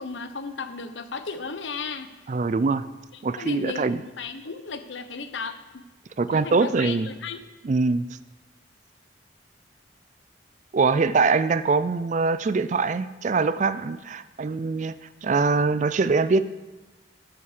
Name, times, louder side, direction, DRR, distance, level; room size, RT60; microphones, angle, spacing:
voice 1, 0.0-2.1 3.1-5.8 6.3-7.4, left 4 dB, 80° left, 10 dB, 0.9 m, -35 dB
voice 2, 2.3-2.9 3.2-4.0 6.2-7.1 7.6-8.0 10.7-15.0 15.2-16.4, right 4 dB, 40° right, 14 dB, 0.4 m, -23 dB
11.0 x 5.8 x 6.6 m, 1.2 s
head